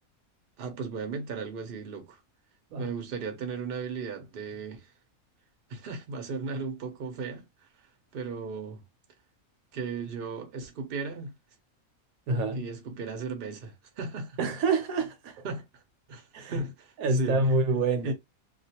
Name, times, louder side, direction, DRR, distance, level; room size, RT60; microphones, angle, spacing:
voice 1, 0.6-2.2 2.8-4.9 5.7-7.4 8.1-8.8 9.7-11.3 12.5-14.4 15.4-15.8 16.1-17.4 18.0-18.1, right 5 dB, 50° right, 0.8 m, -36 dB
voice 2, 12.3-12.6 14.4-15.4 16.3-16.6 17.0-18.1, right 2 dB, 75° right, 1.1 m, -27 dB
2.4 x 2.3 x 2.8 m
omnidirectional pair, 1.5 m